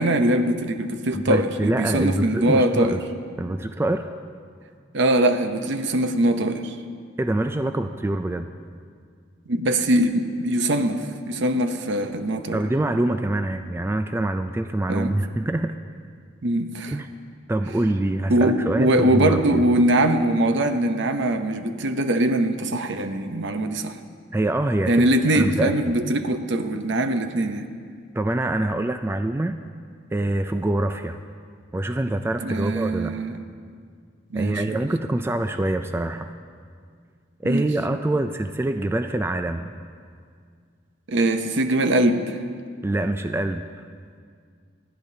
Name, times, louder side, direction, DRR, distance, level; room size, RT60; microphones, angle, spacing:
voice 1, 0.0-3.0 4.9-6.7 9.5-12.6 14.9-15.1 16.4-17.0 18.3-24.0 24.9-27.6 32.4-33.4 34.3-34.9 37.4-37.7 41.1-42.4, right 1 dB, 65° right, 8 dB, 0.8 m, -22 dB
voice 2, 1.1-3.0 3.4-4.1 7.2-8.5 12.5-15.8 16.9-17.1 17.5-19.6 24.3-25.7 28.1-29.5 30.1-31.2 31.7-33.1 34.3-36.3 37.4-39.7 42.8-43.6, right 1 dB, 10° right, 8 dB, 0.3 m, -25 dB
28.0 x 10.5 x 2.7 m, 2.1 s
head